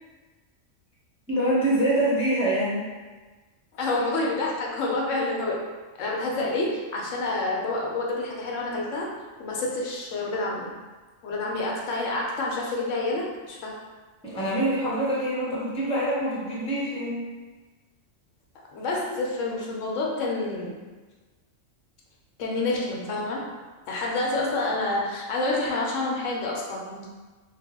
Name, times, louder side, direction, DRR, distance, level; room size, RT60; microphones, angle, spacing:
voice 1, 1.3-2.9 14.2-17.2, right 1 dB, 5° left, -8 dB, 0.7 m, -25 dB
voice 2, 3.7-5.6 6.0-9.1 9.4-10.7 11.2-13.8 18.7-20.8 22.4-23.5 23.9-27.1, left 2 dB, 80° left, -2 dB, 1.0 m, -28 dB
3.3 x 2.1 x 3.5 m, 1.3 s
omnidirectional pair, 1.3 m